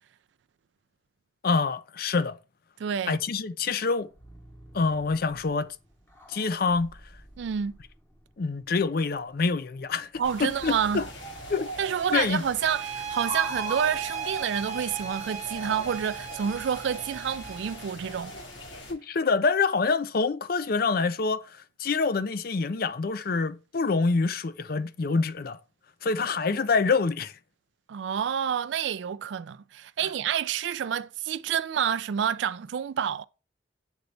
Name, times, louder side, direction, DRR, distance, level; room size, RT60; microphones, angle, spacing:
voice 1, 1.4-2.4 3.1-4.1 4.7-5.8 6.3-7.0 8.4-10.1 10.4-11.1 11.5-11.7 12.1-12.4 18.9-25.6 26.0-27.4, left 4 dB, 50° left, 0.5 m, -26 dB
voice 2, 2.8-3.2 7.4-7.7 10.2-11.0 11.8-18.3 27.9-33.2, right 8 dB, 70° right, 0.3 m, -28 dB
sound 1, 4.0-11.7, right 1 dB, 10° left, 0.8 m, -53 dB
sound 2, 10.2-18.9, right 1 dB, 75° left, 2.5 m, -40 dB
sound 3, 12.6-17.9, right 7 dB, 35° right, 0.7 m, -37 dB
8.1 x 4.0 x 3.2 m
head